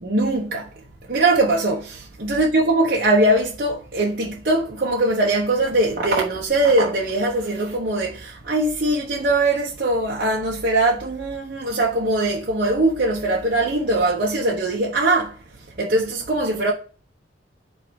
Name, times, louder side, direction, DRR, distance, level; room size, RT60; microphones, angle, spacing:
voice 1, 0.0-0.7 1.1-15.4 15.8-16.7, right 2 dB, 55° right, 1.1 m, -21 dB
5.6 x 3.6 x 5.2 m
head